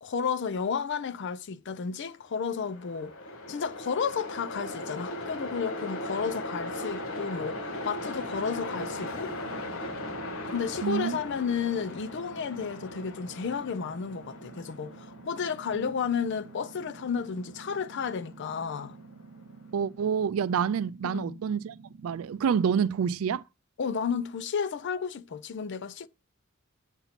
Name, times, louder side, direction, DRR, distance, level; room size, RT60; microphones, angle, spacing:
voice 1, 0.0-3.1 3.5-9.3 10.5-19.0 21.1-21.4 23.8-26.1, left 6 dB, 60° left, 0.4 m, -32 dB
Train, 2.3-19.5, left 1 dB, 75° left, 1.2 m, -39 dB
sound 1, 8.2-22.5, right 4 dB, 50° right, 0.9 m, -50 dB
voice 2, 10.8-11.2 15.7-15.9 19.7-21.7 22.0-23.4, right 7 dB, 90° right, 0.3 m, -27 dB
8.0 x 2.9 x 5.7 m
head